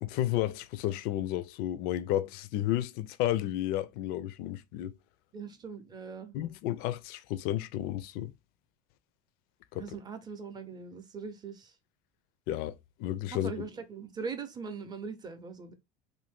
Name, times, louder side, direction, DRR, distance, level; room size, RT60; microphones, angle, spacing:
voice 1, 0.0-4.9 6.3-8.3 9.7-9.8 12.5-13.5, left 13 dB, 60° left, 0.4 m, -32 dB
voice 2, 5.3-6.4 9.7-11.7 13.3-15.7, right 5 dB, 20° right, 0.6 m, -41 dB
2.6 x 2.6 x 3.5 m
supercardioid pair, 135°, 18 cm